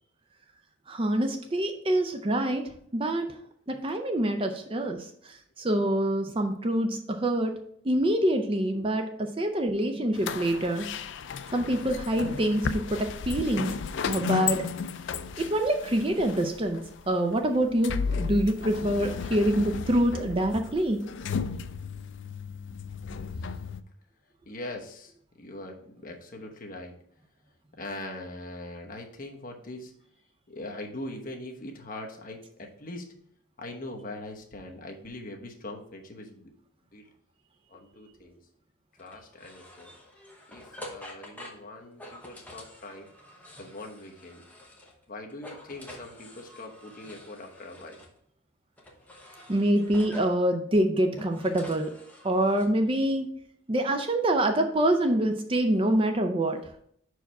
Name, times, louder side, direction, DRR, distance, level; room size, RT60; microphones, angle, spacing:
voice 1, 0.9-3.4 3.7-7.6 7.8-10.9 11.5-13.7 14.1-14.6 15.4-21.0 49.5-51.9 52.2-53.3 53.7-56.6, right 1 dB, 25° right, 5 dB, 0.5 m, -26 dB
sound 1, 10.1-23.8, left 6 dB, 55° left, 0.3 m, -34 dB
voice 2, 24.5-25.1 25.4-26.9 27.8-29.9 30.5-33.1 33.6-36.5 36.9-37.1 37.7-38.4 39.0-39.9 40.5-43.1 43.6-44.4 45.1-48.0, left 2 dB, 40° left, 1 dB, 1.0 m, -41 dB
sound 2, 39.0-45.0 45.3-48.1 48.8-50.4 51.0-52.6, left 1 dB, 5° left, 0.9 m, -48 dB
5.6 x 4.7 x 4.6 m, 0.66 s
head